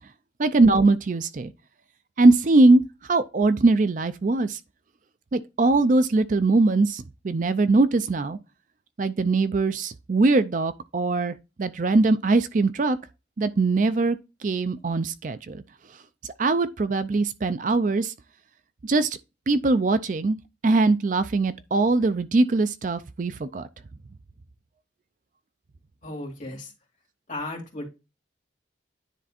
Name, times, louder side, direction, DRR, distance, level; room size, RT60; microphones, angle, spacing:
voice 1, 0.4-1.5 2.2-4.6 5.3-8.4 9.0-13.0 13.4-14.2 14.4-15.6 16.4-18.1 18.8-19.2 19.5-20.4 20.6-23.7, right 3 dB, 40° right, 0.4 m, -21 dB
voice 2, 26.0-26.7 27.3-27.9, left 1 dB, 40° left, 2.8 m, -35 dB
10.0 x 3.4 x 4.2 m
head